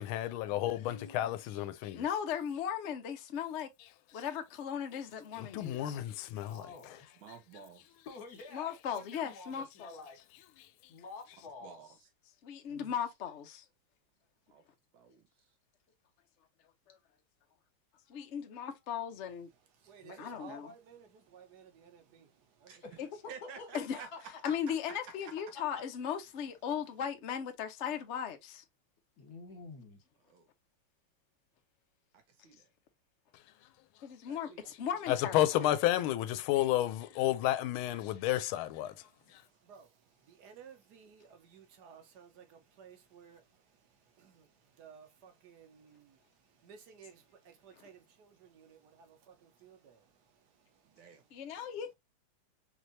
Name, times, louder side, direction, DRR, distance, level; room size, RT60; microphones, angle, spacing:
voice 1, 0.0-2.0 5.4-6.6 35.1-38.9, left 13 dB, 85° left, 1.4 m, -31 dB
voice 2, 0.8-1.4 6.4-7.0 8.0-10.2 10.9-12.0 12.7-12.9 20.0-20.2 22.8-24.2 24.5-24.6 25.7-25.8 29.2-30.0, left 4 dB, 50° left, 1.7 m, -49 dB
voice 3, 1.9-3.7 4.1-6.0 8.5-10.0 12.4-13.6 16.9-17.0 18.1-19.5 20.1-20.7 23.0-23.2 23.7-28.6 34.0-35.8 47.8-47.9 51.3-51.9, left 8 dB, 70° left, 0.6 m, -37 dB
voice 4, 7.2-7.8 11.6-11.9 14.5-14.6 14.9-15.3 22.7-22.8 23.3-24.1 30.3-30.5 32.1-32.7 34.3-34.7 51.0-51.2 51.5-51.6, right 6 dB, 80° right, 1.9 m, -51 dB
voice 5, 19.8-22.3 22.6-22.7 39.6-39.9 40.3-43.4 44.2-44.5 44.8-46.2 46.6-50.0, right 6 dB, 60° right, 1.4 m, -55 dB
4.6 x 3.2 x 2.6 m
omnidirectional pair, 2.2 m